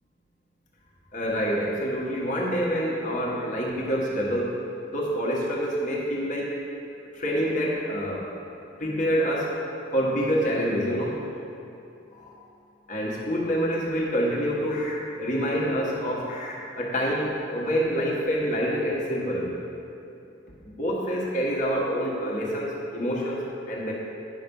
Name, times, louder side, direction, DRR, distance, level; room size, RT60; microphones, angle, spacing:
voice 1, 1.1-4.6 4.9-6.5 7.1-8.3 8.8-9.6 9.9-11.2 12.1-12.3 12.9-19.5 20.7-23.9, equal, 40° left, -3 dB, 1.5 m, -27 dB
9.8 x 5.9 x 5.4 m, 2.7 s
head